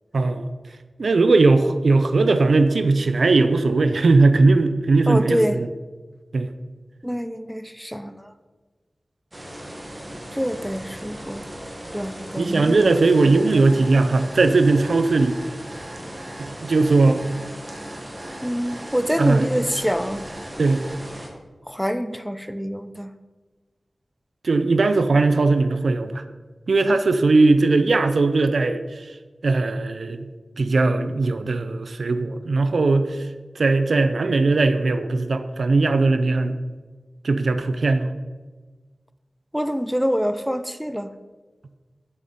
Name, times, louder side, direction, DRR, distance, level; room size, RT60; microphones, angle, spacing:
voice 1, 0.1-0.5 1.0-5.7 6.3-6.5 12.4-15.4 16.4-17.2 19.2-19.5 20.6-20.8 24.4-26.2 26.7-29.1 29.4-30.3 30.6-33.3 33.6-36.6 37.2-38.1, right 3 dB, 90° right, 10 dB, 0.7 m, -19 dB
voice 2, 5.1-5.6 7.0-8.3 10.3-11.5 11.9-12.9 13.2-13.6 18.4-20.3 21.7-23.1 39.5-41.1, equal, ahead, 11 dB, 0.6 m, -26 dB
sound 1, 9.3-21.3, equal, 20° right, 1.8 m, -37 dB
Alarm, 13.2-21.0, right 2 dB, 55° right, 1.6 m, -44 dB
10.5 x 6.5 x 5.4 m, 1.3 s
wide cardioid pair, 65°, 0 cm